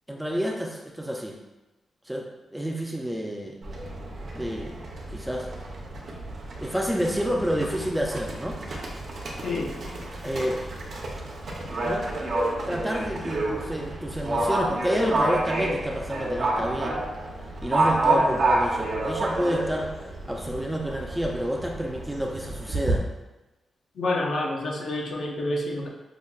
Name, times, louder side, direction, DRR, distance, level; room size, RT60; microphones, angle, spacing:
voice 1, 0.1-1.4 2.1-2.2 2.5-3.6 4.3-4.8 5.1-5.5 6.6-8.6 10.2-10.8 11.8-12.0 12.7-17.1 17.6-23.1, equal, 5° right, 0 dB, 0.3 m, -29 dB
Livestock farm animals working animals, 3.6-23.0, right 2 dB, 50° right, 0.6 m, -29 dB
voice 2, 24.0-25.9, left 2 dB, 60° left, 0 dB, 0.5 m, -28 dB
5.1 x 2.1 x 2.3 m, 1.0 s
wide cardioid pair, 145°, 0 cm